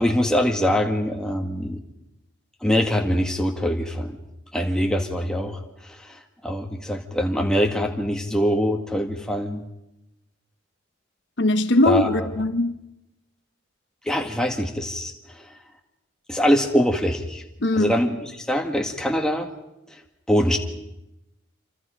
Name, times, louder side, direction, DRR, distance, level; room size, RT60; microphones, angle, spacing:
voice 1, 0.0-1.8 2.6-4.2 4.5-9.6 11.9-12.3 14.0-15.5 16.3-17.4 17.8-19.5 19.9-20.0 20.3-20.6, equal, 5° left, 1.8 m, -23 dB
voice 2, 11.4-12.8 17.6-17.9, left 1 dB, 60° left, 0.9 m, -20 dB
27.0 x 25.0 x 5.0 m
head